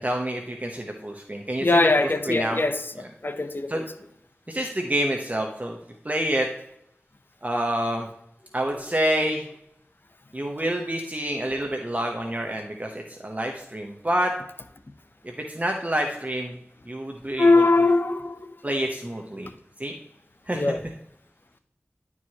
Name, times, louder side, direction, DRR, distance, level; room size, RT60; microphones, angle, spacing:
voice 1, 0.0-2.6 3.7-3.8 4.5-5.8 6.0-6.5 7.4-8.1 8.5-9.4 10.3-14.3 15.2-16.6 16.9-17.6 18.6-19.5 19.8-19.9 20.5-20.7, right 1 dB, 30° right, 0.9 m, -28 dB
voice 2, 1.6-2.8 3.2-3.8 17.4-18.4 20.5-20.8, left 2 dB, 45° left, 0.7 m, -21 dB
11.0 x 4.7 x 2.9 m
wide cardioid pair, 40°, 5 cm